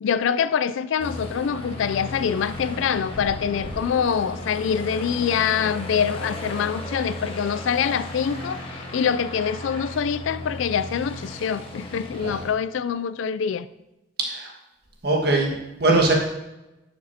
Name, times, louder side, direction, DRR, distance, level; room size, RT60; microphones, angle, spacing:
voice 1, 0.0-13.7, left 7 dB, 70° left, 0.3 m, -25 dB
Aircraft, 1.0-12.5, left 1 dB, 30° left, 1.2 m, -35 dB
Acoustic guitar / Strum, 8.2-11.1, left 2 dB, 10° right, 2.6 m, -46 dB
voice 2, 14.2-14.5 15.0-16.1, right 2 dB, 55° right, 1.6 m, -22 dB
11.5 x 6.7 x 2.8 m
head